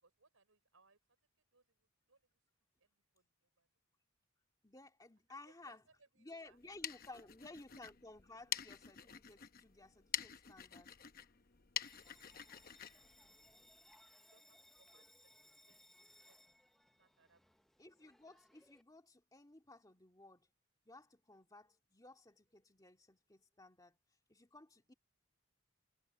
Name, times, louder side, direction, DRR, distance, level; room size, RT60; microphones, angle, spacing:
voice 1, 0.0-1.0 1.5-2.4 2.8-3.3 3.6-3.7 5.4-6.6 6.9-7.5 14.2-15.1 15.6-15.7 16.3-16.4 17.0-17.4, right 3 dB, 80° right, 4.7 m, -71 dB
voice 2, 4.6-5.8 6.2-10.9 17.8-20.5 20.9-24.0 24.3-24.9, left 2 dB, 15° left, 2.4 m, -57 dB
sound 1, 6.5-14.0, left 10 dB, 45° left, 0.9 m, -47 dB
Bell, 11.8-18.8, left 1 dB, ahead, 0.6 m, -66 dB
head